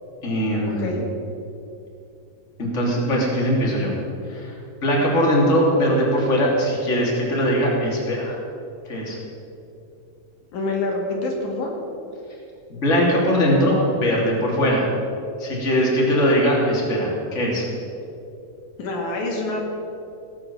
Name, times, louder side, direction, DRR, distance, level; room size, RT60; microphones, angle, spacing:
voice 1, 0.2-0.9 2.6-3.9 4.3-4.5 4.8-8.4 8.9-9.2 12.7-14.8 15.4-17.7, equal, 25° left, -3 dB, 3.1 m, -20 dB
voice 2, 10.5-11.7 18.8-19.6, left 2 dB, 80° left, -1 dB, 3.5 m, -26 dB
18.5 x 7.7 x 7.3 m, 2.7 s
omnidirectional pair, 3.4 m